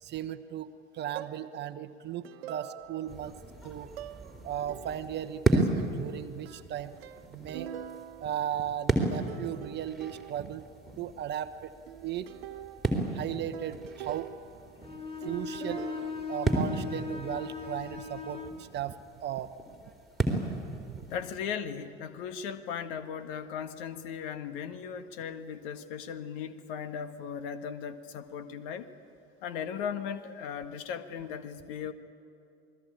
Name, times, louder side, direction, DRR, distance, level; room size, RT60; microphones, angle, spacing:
voice 1, 0.0-3.4 3.6-3.9 4.4-6.9 7.3-7.7 8.2-10.7 11.0-11.7 12.0-12.3 13.1-14.3 15.2-15.8 16.3-19.0 19.2-19.5 20.9-21.0, right 10 dB, 30° right, 9 dB, 1.0 m, -36 dB
sound 1, 1.1-1.6 2.2-3.2 4.0-4.3 4.7-5.2 6.4-9.0 9.3-10.7 11.9-14.9 15.2-16.1, right 11 dB, 60° right, 1.2 m, -45 dB
sound 2, 3.1-21.4, right 2 dB, ahead, 3.9 m, -35 dB
Bowed string instrument, 14.8-18.6, left 4 dB, 15° left, 2.6 m, -38 dB
voice 2, 21.1-28.9 29.4-31.9, left 7 dB, 55° left, 10 dB, 1.7 m, -37 dB
28.0 x 20.5 x 8.8 m, 2.6 s
figure-of-eight pair, 80°, 34 cm